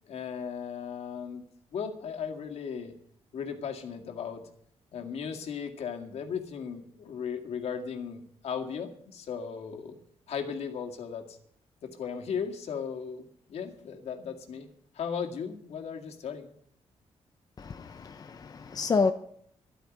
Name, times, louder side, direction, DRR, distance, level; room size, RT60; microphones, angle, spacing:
voice 1, 0.0-1.4 1.7-2.9 3.3-4.5 4.9-10.0 10.3-11.4 11.8-14.7 14.9-16.5, left 7 dB, 70° left, 2.1 m, -36 dB
voice 2, 17.6-19.1, left 4 dB, 35° left, 0.7 m, -29 dB
12.5 x 9.2 x 9.8 m
cardioid pair, 130°, 11 cm